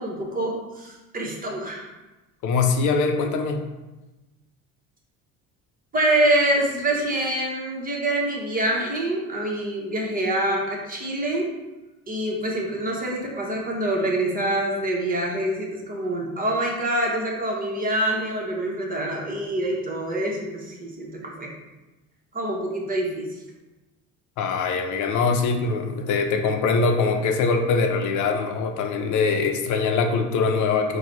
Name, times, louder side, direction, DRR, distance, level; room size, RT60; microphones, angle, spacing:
voice 1, 0.0-1.9 5.9-11.5 12.1-21.5 22.3-23.4, right 1 dB, 25° right, -2 dB, 1.1 m, -25 dB
voice 2, 2.4-3.6 24.4-31.0, left 4 dB, 65° left, 5 dB, 0.7 m, -23 dB
4.6 x 2.3 x 4.1 m, 1.1 s
supercardioid pair, 90°, 33 cm